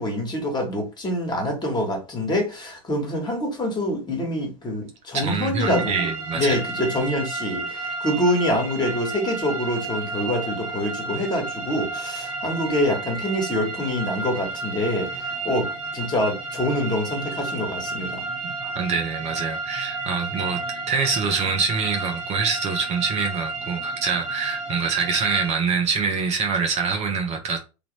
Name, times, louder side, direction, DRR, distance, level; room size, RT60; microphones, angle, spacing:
voice 1, 0.0-6.1 6.3-15.7 15.9-18.2, left 1 dB, 25° left, 1.6 m, -25 dB
voice 2, 5.1-6.6 18.4-20.6 20.9-27.6, right 5 dB, 35° right, 0.8 m, -25 dB
sound 1, 5.6-25.5, right 3 dB, 85° right, 1.3 m, -32 dB
3.3 x 2.4 x 3.2 m
figure-of-eight pair, 80°, 19 cm